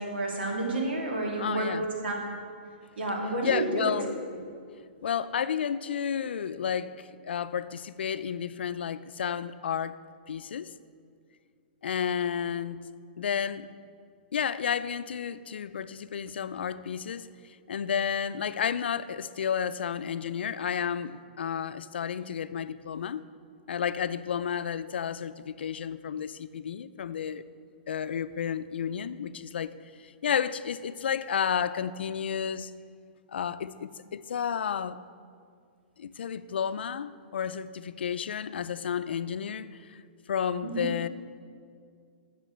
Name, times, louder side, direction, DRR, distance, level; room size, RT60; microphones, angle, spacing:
voice 1, 0.0-2.1 3.0-3.9 40.6-40.9, right 2 dB, 80° right, 0 dB, 2.7 m, -30 dB
voice 2, 1.4-1.8 3.4-4.1 5.0-10.0 10.3-10.7 11.8-12.8 13.2-13.7 14.3-23.2 23.7-27.4 27.9-29.7 30.0-32.7 33.3-35.0 36.0-40.0 40.3-41.1, left 8 dB, 85° left, 14 dB, 0.5 m, -31 dB
9.4 x 6.9 x 7.9 m, 2.2 s
hypercardioid pair, 175°, 6 cm